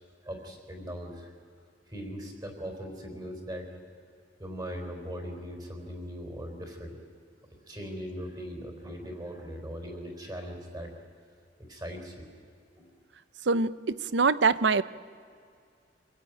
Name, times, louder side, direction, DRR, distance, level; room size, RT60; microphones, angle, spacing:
voice 1, 0.2-1.3 1.9-3.7 4.4-7.0 7.7-10.9 11.7-12.3 12.8-12.9, equal, 20° right, 3 dB, 4.0 m, -39 dB
voice 2, 13.4-14.8, right 4 dB, 70° right, 17 dB, 0.7 m, -24 dB
26.5 x 17.0 x 9.2 m, 2.3 s
head